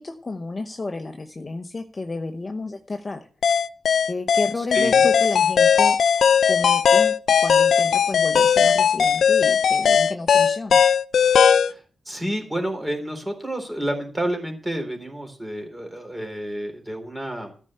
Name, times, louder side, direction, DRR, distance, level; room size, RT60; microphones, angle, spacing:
voice 1, 0.0-3.2 4.0-6.0 6.4-10.8, left 3 dB, 25° left, 6 dB, 0.9 m, -31 dB
sound 1, 3.4-11.7, left 7 dB, 65° left, 0.6 m, -18 dB
voice 2, 4.6-5.1 11.6-17.5, right 1 dB, 10° right, 4 dB, 3.7 m, -30 dB
13.5 x 5.5 x 8.7 m, 0.40 s
wide cardioid pair, 145°, 0 cm